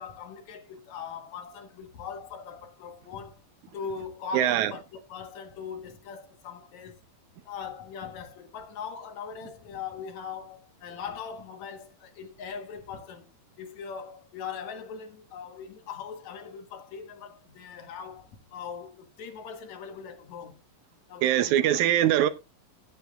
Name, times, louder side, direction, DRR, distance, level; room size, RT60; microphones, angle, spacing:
voice 1, 0.0-3.4 3.7-7.0 7.5-13.3 13.6-20.6 21.1-21.7 22.2-22.3, left 6 dB, 60° left, 2.4 m, -40 dB
voice 2, 4.3-4.7 21.2-22.3, right 11 dB, 75° right, 1.8 m, -22 dB
17.0 x 7.9 x 2.4 m
omnidirectional pair, 4.1 m